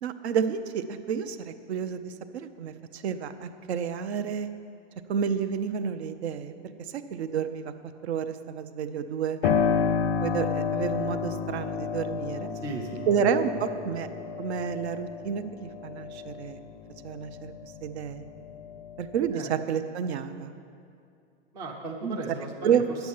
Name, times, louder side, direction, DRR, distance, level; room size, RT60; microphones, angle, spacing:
voice 1, 0.0-4.5 5.1-7.7 8.0-9.4 10.2-12.5 13.1-14.1 14.4-16.6 17.0-17.5 17.8-18.2 19.0-20.5 22.0-22.2 22.6-22.8, right 7 dB, 65° right, 10 dB, 0.8 m, -30 dB
Piano, 9.4-17.9 18.3-19.3, left 6 dB, 55° left, 0.5 m, -30 dB
voice 2, 12.6-13.7 14.1-14.5 19.3-19.5 21.5-23.1, right 3 dB, 10° right, 0 dB, 0.4 m, -37 dB
10.5 x 8.1 x 7.2 m, 2.4 s
supercardioid pair, 160°, 35 cm